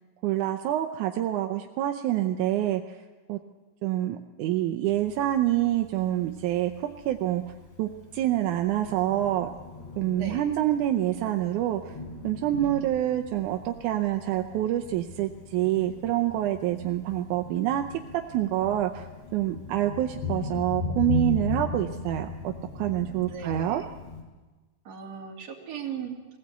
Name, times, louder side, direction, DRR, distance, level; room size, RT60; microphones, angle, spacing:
voice 1, 0.2-2.8 3.3-3.4 3.8-7.4 7.8-9.5 10.0-12.0 12.2-17.8 18.1-19.1 19.3-23.8, right 13 dB, 75° right, 5 dB, 2.0 m, -27 dB
Thunder, 4.9-24.2, left 3 dB, 50° left, 4.9 m, -38 dB
voice 2, 23.2-23.9 24.9-26.4, right 7 dB, 50° right, 0 dB, 3.6 m, -38 dB
21.5 x 16.5 x 8.2 m, 1.2 s
omnidirectional pair, 4.0 m